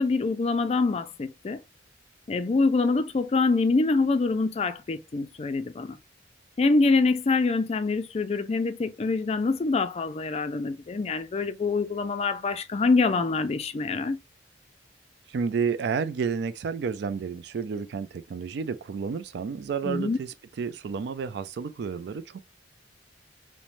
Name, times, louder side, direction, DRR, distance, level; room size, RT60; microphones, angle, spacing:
voice 1, 0.0-1.6 2.3-6.0 6.6-14.2 19.8-20.2, left 3 dB, 35° left, 0.3 m, -25 dB
voice 2, 15.3-22.4, right 6 dB, 60° right, 0.3 m, -31 dB
3.0 x 2.1 x 2.5 m
head